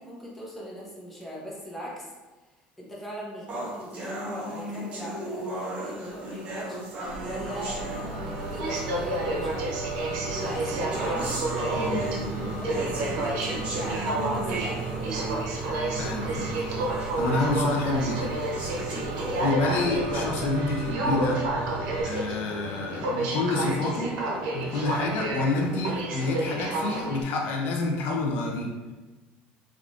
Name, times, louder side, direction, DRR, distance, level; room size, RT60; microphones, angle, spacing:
voice 1, 0.0-2.1 2.8-6.8 7.2-9.7 10.3-11.6 12.0-15.3 19.1-19.3, equal, 5° left, -5 dB, 0.7 m, -39 dB
sound 1, 3.5-8.6 9.5-9.6 10.4-15.6 16.1-16.2 16.7-16.8 17.5-17.6 18.3-19.5, right 1 dB, 35° right, 0.8 m, -36 dB
sound 2, 6.1-22.0, right 4 dB, 65° right, 1.1 m, -35 dB
Aircraft, 7.8-27.2, right 2 dB, 85° right, 0.7 m, -31 dB
voice 2, 11.7-12.1 15.9-18.3 19.4-21.5 22.0-24.2 24.5-28.9, left 2 dB, 60° left, 0 dB, 0.5 m, -28 dB
3.5 x 2.4 x 2.4 m, 1.2 s
cardioid pair, 130°, 4 cm